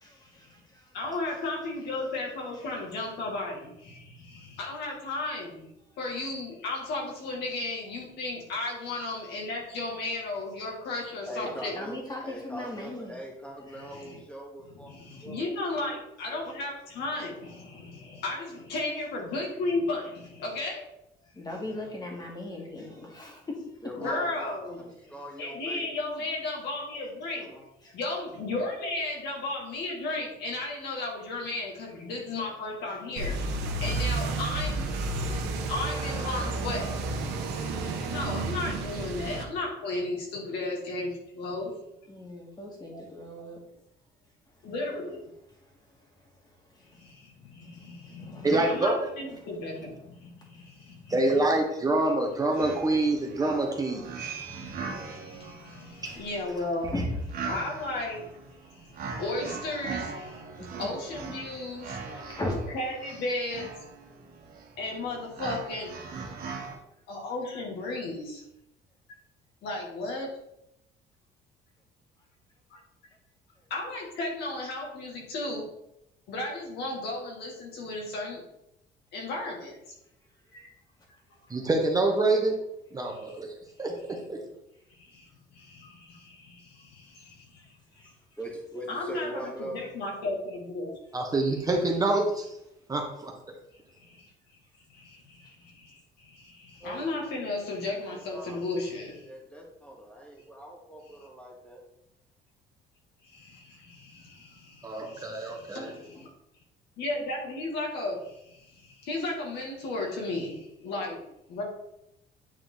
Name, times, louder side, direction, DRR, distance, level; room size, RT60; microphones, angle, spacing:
voice 1, 0.0-0.9 11.7-13.2 13.7-14.0 21.3-23.8 27.8-27.9 42.1-43.6 46.7-46.8 48.0-48.6 49.4-49.5 56.0-56.2 56.8-57.1 60.6-60.9 62.1-62.7 88.0-88.1, left 1 dB, 25° left, 2.2 m, -38 dB
voice 2, 0.9-5.7 6.0-11.7 13.9-14.2 14.8-20.8 24.0-24.9 25.4-27.5 27.9-37.0 38.1-41.7 42.9-43.0 44.6-45.3 46.9-51.1 54.5-56.9 57.4-58.3 58.6-60.5 60.8-62.0 62.7-63.7 64.8-66.0 67.1-68.4 69.6-70.3 72.7-72.8 73.7-75.7 76.3-78.4 79.1-79.8 80.5-80.7 83.1-83.4 84.9-88.1 88.9-90.9 94.0-94.3 94.9-99.2 103.2-106.3 107.0-111.2 111.5-111.6, left 2 dB, 75° left, 2.3 m, -35 dB
voice 3, 11.3-15.4 15.9-16.0 16.3-16.5 23.8-25.9 27.4-27.6 88.0-89.9 96.8-97.2 98.0-98.9 99.2-101.8, right 1 dB, 5° left, 2.2 m, -42 dB
sound 1, 33.2-39.4, right 2 dB, 85° right, 1.3 m, -31 dB
voice 4, 48.4-49.0 51.1-54.1 56.0-56.2 81.5-82.6 82.9-83.5 83.8-84.4 91.1-92.4 92.9-93.3 104.8-105.9, right 2 dB, 20° right, 1.2 m, -26 dB
sound 2, 52.2-52.3 52.5-66.8, right 5 dB, 60° right, 1.6 m, -40 dB
8.8 x 4.3 x 4.0 m
cardioid pair, 110°, 17 cm